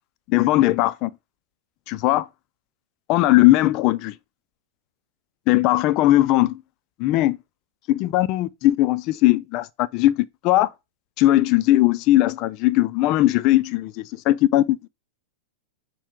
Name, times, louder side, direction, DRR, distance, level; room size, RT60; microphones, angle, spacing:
voice 1, 0.3-1.1 1.9-2.3 3.1-4.2 5.5-6.6 7.0-7.4 7.9-10.7 11.2-14.9, left 16 dB, 45° left, 0.4 m, -19 dB
6.4 x 2.2 x 3.7 m
hypercardioid pair, 105°, 0 cm